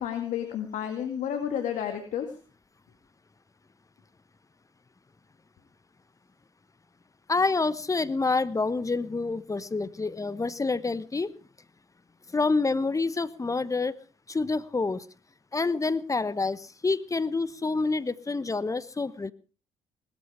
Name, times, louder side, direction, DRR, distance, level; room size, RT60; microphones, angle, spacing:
voice 1, 0.0-2.3, left 9 dB, 65° left, 6 dB, 2.1 m, -31 dB
voice 2, 7.3-11.3 12.3-13.9 14.3-15.0 15.5-19.3, left 3 dB, 25° left, 16 dB, 1.1 m, -27 dB
19.0 x 14.0 x 5.0 m, 0.36 s
hypercardioid pair, 55°, 14 cm